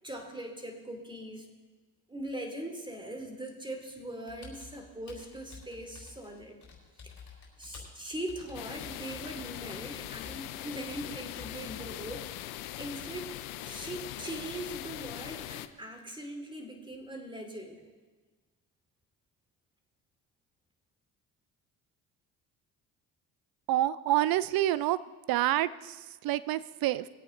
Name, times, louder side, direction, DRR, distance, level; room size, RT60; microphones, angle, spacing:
voice 1, 0.0-1.5 2.1-6.6 7.0-7.1 7.6-13.3 13.6-17.9, right 1 dB, 10° right, 4 dB, 2.8 m, -41 dB
Computer keyboard, 4.3-12.2, left 5 dB, 50° left, 4.4 m, -51 dB
sound 1, 8.5-15.7, left 15 dB, 90° left, 0.6 m, -41 dB
voice 2, 23.7-25.0 25.3-27.1, right 14 dB, 65° right, 17 dB, 0.7 m, -28 dB
21.5 x 8.4 x 3.9 m, 1.3 s
supercardioid pair, 65°, 38 cm